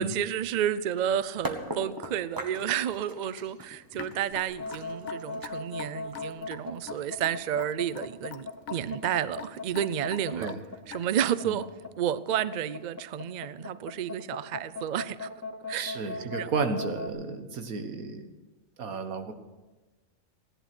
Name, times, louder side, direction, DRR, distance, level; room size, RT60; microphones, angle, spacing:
voice 1, 0.0-10.6 10.9-11.7 12.0-15.3 15.7-16.1 16.4-16.5, right 9 dB, 65° right, 16 dB, 0.4 m, -31 dB
sound 1, 1.4-7.3, right 1 dB, 15° right, 1.2 m, -40 dB
Raindrop / Drip, 3.9-11.3, left 9 dB, 80° left, 1.3 m, -44 dB
sound 2, 4.5-17.1, left 3 dB, 15° left, 1.0 m, -38 dB
voice 2, 15.7-18.3 18.8-19.3, right 4 dB, 90° right, 7 dB, 1.7 m, -33 dB
16.5 x 11.0 x 6.0 m, 1.2 s
omnidirectional pair, 1.4 m